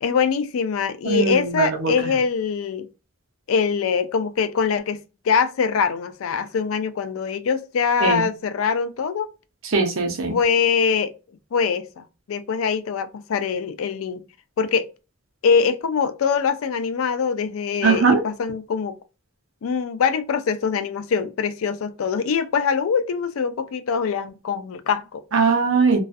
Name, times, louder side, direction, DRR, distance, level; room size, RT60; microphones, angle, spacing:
voice 1, 0.0-2.9 3.5-9.3 10.3-11.1 11.5-14.2 14.6-14.9 15.4-19.0 19.6-25.2, left 6 dB, 80° left, 0.4 m, -23 dB
voice 2, 1.1-1.9 8.0-8.3 9.7-10.4 17.8-18.2 25.3-26.0, right 4 dB, 75° right, 0.7 m, -20 dB
2.5 x 2.4 x 2.4 m
head